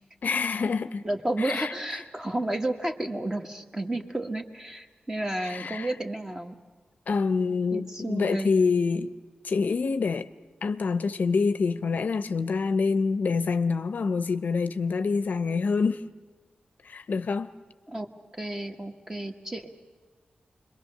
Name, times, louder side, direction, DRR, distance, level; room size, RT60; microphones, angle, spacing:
voice 1, 0.2-1.0 1.4-1.8 5.4-5.9 7.1-9.1 9.4-10.3 10.6-16.0 16.8-17.5, left 4 dB, 65° left, 0.7 m, -26 dB
voice 2, 1.0-6.6 7.7-8.5 17.9-18.1 18.4-19.7, right 1 dB, 20° right, 1.6 m, -31 dB
26.5 x 22.0 x 6.7 m
wide cardioid pair, 95°, 3 cm